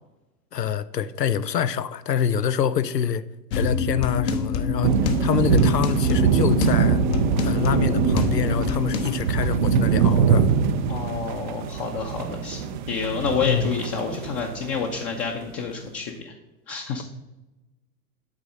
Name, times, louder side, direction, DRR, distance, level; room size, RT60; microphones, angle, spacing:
voice 1, 0.5-3.2 3.5-7.0 7.4-10.5 13.4-13.8, left 8 dB, 85° left, 0.6 m, -26 dB
sound 1, 3.5-9.2, left 4 dB, 50° left, 1.0 m, -26 dB
sound 2, 4.8-14.9, right 6 dB, 35° right, 0.4 m, -23 dB
voice 2, 10.9-16.3 16.7-17.0, left 5 dB, 30° left, 0.8 m, -29 dB
8.4 x 4.2 x 6.3 m
figure-of-eight pair, 100°, 48 cm